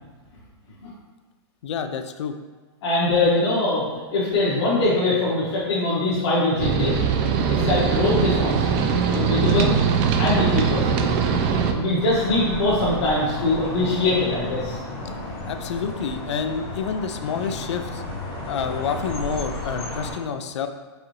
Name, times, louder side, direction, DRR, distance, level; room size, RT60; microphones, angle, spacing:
voice 1, 1.6-2.3 15.4-18.0 18.4-20.7, left 6 dB, 90° left, 8 dB, 0.4 m, -28 dB
voice 2, 2.8-8.8 9.1-9.7 10.2-11.1 11.7-14.8 15.0-15.2, left 2 dB, 70° left, -9 dB, 1.3 m, -22 dB
sound 1, 6.6-11.7, right 6 dB, 35° right, 0.4 m, -21 dB
sound 2, 12.0-20.1, left 2 dB, 40° left, 1.1 m, -33 dB
4.7 x 2.7 x 3.1 m, 1.3 s
supercardioid pair, 150°, 14 cm